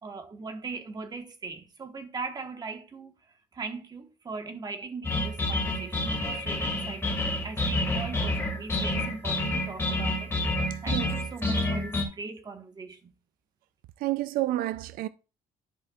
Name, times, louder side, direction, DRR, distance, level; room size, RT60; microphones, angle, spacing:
voice 1, 0.0-3.1 3.5-10.3 10.8-13.1, right 4 dB, 30° right, 1.2 m, -39 dB
sound 1, 5.0-12.0, left 1 dB, 15° left, 2.2 m, -28 dB
voice 2, 14.0-15.1, right 15 dB, 90° right, 0.4 m, -29 dB
13.0 x 5.6 x 2.4 m
cardioid pair, 135°, 14 cm